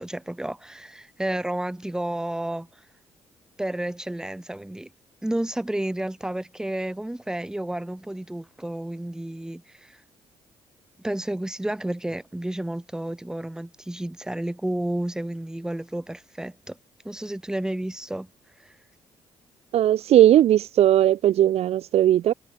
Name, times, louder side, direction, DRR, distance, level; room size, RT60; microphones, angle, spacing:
voice 1, 0.0-2.7 3.6-4.9 5.2-10.0 11.0-16.8 17.0-18.3 18.6-18.7, right 1 dB, 5° right, 2.0 m, -31 dB
voice 2, 19.7-22.3, right 12 dB, 70° right, 1.1 m, -18 dB
cardioid pair, 120°, 11 cm